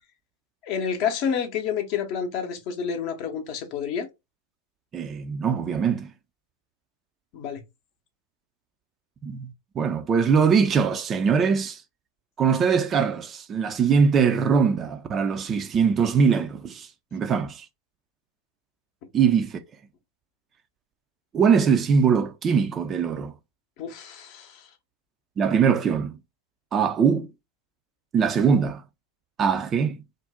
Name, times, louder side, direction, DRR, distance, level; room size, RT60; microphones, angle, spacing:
voice 1, 0.6-4.1 7.3-7.6 23.8-24.7, left 7 dB, 45° left, 0.6 m, -29 dB
voice 2, 4.9-6.1 9.2-11.8 12.4-17.7 19.1-19.6 21.3-23.3 25.4-26.2 26.7-27.3 28.1-28.8 29.4-30.0, right 6 dB, 25° right, 0.3 m, -22 dB
2.6 x 2.0 x 3.5 m
figure-of-eight pair, 90°, 0 cm